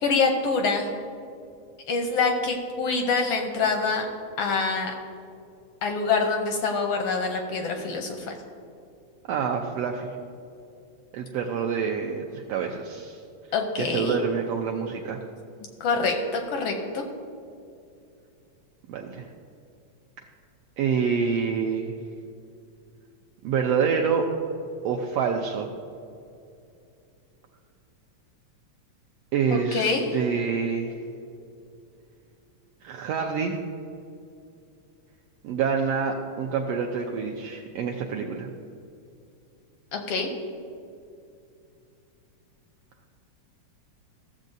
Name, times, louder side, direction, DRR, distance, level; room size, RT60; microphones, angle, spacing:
voice 1, 0.0-0.9 1.9-4.1 4.4-4.9 5.8-8.3 13.5-14.2 15.8-17.1 29.5-30.2 39.9-40.3, left 4 dB, 75° left, 3 dB, 1.4 m, -25 dB
voice 2, 9.3-10.2 11.1-13.2 13.8-15.2 18.9-19.3 20.8-21.9 23.4-24.3 24.8-25.7 29.3-31.0 32.8-33.6 35.4-38.5, right 6 dB, 80° right, 2 dB, 1.4 m, -27 dB
14.5 x 7.3 x 2.6 m, 2.5 s
omnidirectional pair, 3.3 m